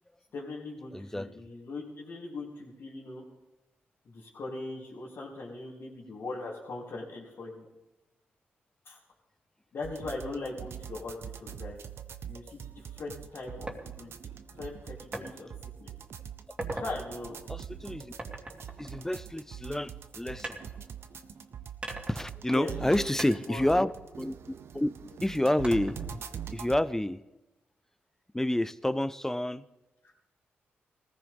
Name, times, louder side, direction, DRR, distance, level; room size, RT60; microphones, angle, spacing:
voice 1, 0.3-3.2 4.0-7.6 8.8-9.0 9.7-11.8 12.2-13.7 14.0-14.1 14.6-15.5 15.8-15.9 16.7-17.4 22.5-23.6, left 2 dB, 65° left, -6 dB, 3.2 m, -40 dB
voice 2, 0.9-1.3 17.5-18.1 18.8-20.6 22.1-23.9 24.2-24.3 24.7-24.9 25.2-26.2 26.5-27.2 28.3-29.6, left 1 dB, 10° left, 16 dB, 0.7 m, -29 dB
sound 1, 9.8-26.8, right 8 dB, 70° right, 0.8 m, -43 dB
sound 2, 13.7-13.8 15.1-15.3 15.8-16.1 16.4-16.9 18.2-19.7 20.4-21.3 21.8-22.9 23.2-24.8 25.6-26.2, right 1 dB, 25° right, 2.8 m, -41 dB
19.5 x 14.5 x 3.6 m, 1.0 s
supercardioid pair, 50°, 4 cm